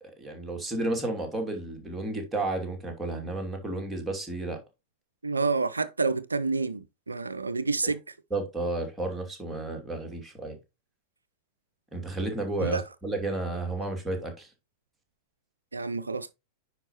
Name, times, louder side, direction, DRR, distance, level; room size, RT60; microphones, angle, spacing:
voice 1, 0.2-4.6 7.8-7.9 8.3-10.6 11.9-14.5, right 2 dB, 5° right, 2.7 m, -32 dB
voice 2, 5.2-8.0 12.6-12.8 15.7-16.3, right 4 dB, 80° right, 0.4 m, -28 dB
9.8 x 5.0 x 3.0 m
figure-of-eight pair, 90°, 0 cm